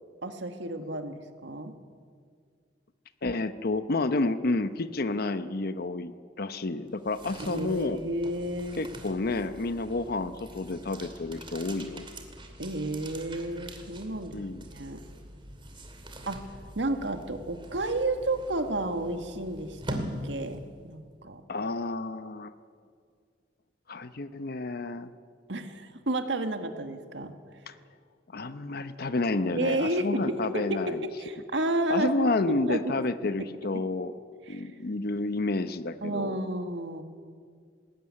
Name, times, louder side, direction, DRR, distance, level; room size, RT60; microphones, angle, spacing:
voice 1, 0.2-1.8 7.4-8.8 12.6-14.4 14.7-15.0 16.3-16.5 16.8-21.4 25.5-27.3 29.6-33.1 33.4-33.5 33.7-33.8 34.5-34.7 36.0-37.0, right 1 dB, 80° right, 7 dB, 1.9 m, -31 dB
voice 2, 3.2-8.0 8.8-12.1 14.3-14.6 21.5-22.5 23.9-25.1 27.7-27.8 28.3-31.1 31.9-34.1 34.5-36.4, left 2 dB, 60° left, 11 dB, 0.9 m, -30 dB
sound 1, 6.9-20.9, right 1 dB, 30° right, 2.7 m, -43 dB
19.5 x 18.5 x 9.8 m, 2.1 s
head